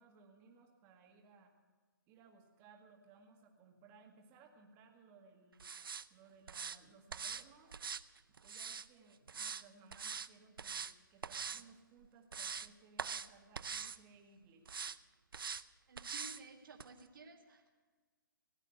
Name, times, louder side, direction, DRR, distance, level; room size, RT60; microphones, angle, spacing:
voice 1, 0.0-1.5 2.1-5.7 6.1-7.7 8.4-14.7, right 4 dB, 20° right, 2 dB, 1.8 m, -62 dB
sound 1, 5.6-6.1 6.5-6.8 7.1-7.4 7.7-8.9 9.3-9.6 9.9-10.3 10.6-10.9 11.2-11.6 12.0-12.7 13.0-13.3 13.6-14.0 14.7-15.0 15.3-15.6 16.0-16.4 16.8-16.9, right 6 dB, 85° right, 0.6 m, -43 dB
voice 2, 15.9-17.8, right 3 dB, 70° right, 1 dB, 2.0 m, -55 dB
17.5 x 8.9 x 8.0 m, 1.4 s
hypercardioid pair, 155°, 11 cm